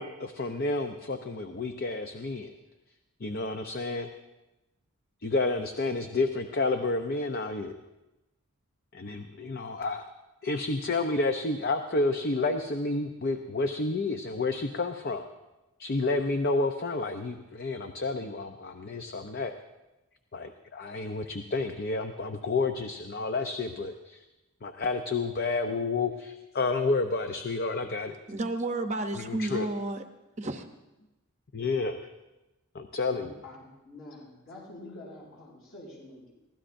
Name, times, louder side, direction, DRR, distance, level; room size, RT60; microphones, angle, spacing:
voice 1, 0.0-2.5 3.2-4.1 5.2-7.8 8.9-10.1 10.4-15.2 15.8-19.5 20.3-24.2 24.6-28.2 29.1-29.7 31.5-32.0 32.7-33.3, left 3 dB, 45° left, 6 dB, 0.6 m, -30 dB
voice 2, 28.3-30.0 30.4-30.6, right 2 dB, 30° right, 6 dB, 0.7 m, -31 dB
voice 3, 33.1-36.3, left 2 dB, 65° left, -5 dB, 6.1 m, -47 dB
22.5 x 16.0 x 2.6 m, 1.0 s
head